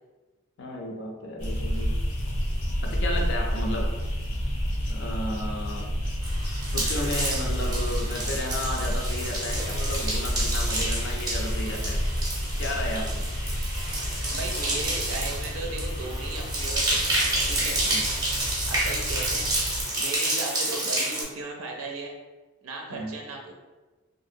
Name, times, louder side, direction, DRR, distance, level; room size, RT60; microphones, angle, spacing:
voice 1, 0.6-1.9 2.8-3.9 4.9-5.9 6.7-12.0 12.6-13.2 17.8-18.1 22.9-23.2, left 1 dB, 55° left, 0 dB, 0.5 m, -33 dB
sound 1, 1.4-19.8, equal, 85° left, 0.8 m, -30 dB
sound 2, 6.2-21.2, right 1 dB, 20° right, 0.6 m, -29 dB
voice 2, 14.3-17.2 17.5-17.8 18.7-19.5 20.0-22.2 22.6-23.5, right 3 dB, 75° right, 1 dB, 0.5 m, -36 dB
2.8 x 2.6 x 2.6 m, 1.2 s
head